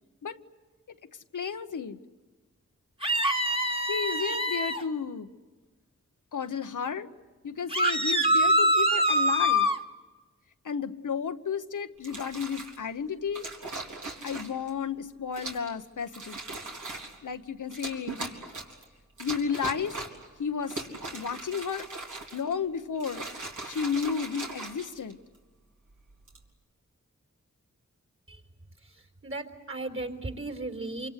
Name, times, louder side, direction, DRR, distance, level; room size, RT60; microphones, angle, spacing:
voice 1, 1.3-2.0 3.9-5.3 6.3-7.1 7.4-9.7 10.6-13.5 14.2-16.4 17.2-18.2 19.2-19.9 20.4-20.8 21.1-21.9 22.3-23.3 23.7-25.2, left 6 dB, 90° left, 8 dB, 1.1 m, -32 dB
sound 1, 3.0-4.8 7.7-9.8, equal, 20° right, 1.9 m, -24 dB
sound 2, 12.0-12.8 13.3-14.7 15.3-15.7 16.1-17.2 17.7-18.8 19.2-20.3 20.6-22.5 22.9-25.4 26.1-26.4, right 2 dB, 85° right, 3.8 m, -39 dB
voice 2, 29.2-31.1, right 2 dB, 45° right, 6 dB, 4.1 m, -35 dB
27.0 x 25.5 x 8.2 m, 1.3 s
cardioid pair, 50°, 30 cm